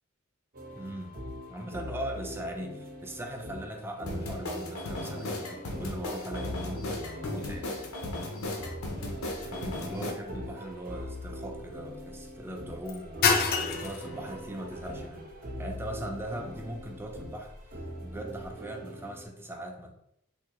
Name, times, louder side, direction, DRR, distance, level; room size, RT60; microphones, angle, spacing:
sound 1, 0.5-19.3, equal, 45° right, 0.7 m, -42 dB
voice 1, 0.7-1.2 1.5-7.7 9.5-13.2 13.7-15.3 15.6-19.9, right 1 dB, 10° right, 2 dB, 0.4 m, -40 dB
sound 2, 4.1-10.1, left 2 dB, 85° left, 0.7 m, -36 dB
sound 3, 8.6-18.5, left 5 dB, 50° left, 0.5 m, -34 dB
3.5 x 2.7 x 2.9 m, 0.77 s
head